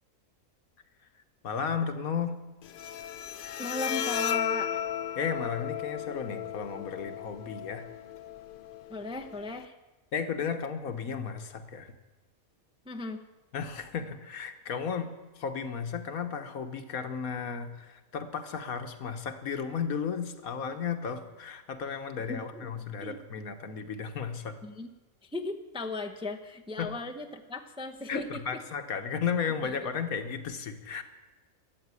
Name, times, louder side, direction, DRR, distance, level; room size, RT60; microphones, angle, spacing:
voice 1, 1.4-2.4 5.2-7.9 10.1-11.9 13.5-24.6 26.8-26.9 28.1-31.0, left 6 dB, 85° left, 7 dB, 1.6 m, -34 dB
Bowed string instrument, 2.6-9.6, left 10 dB, 65° left, 0.5 m, -35 dB
voice 2, 3.6-4.8 8.9-9.8 12.9-13.2 22.3-22.7 23.0-23.2 24.6-24.9 25.2-28.6, left 2 dB, 5° right, 4 dB, 0.5 m, -37 dB
13.5 x 7.9 x 9.6 m, 1.1 s
omnidirectional pair, 1.5 m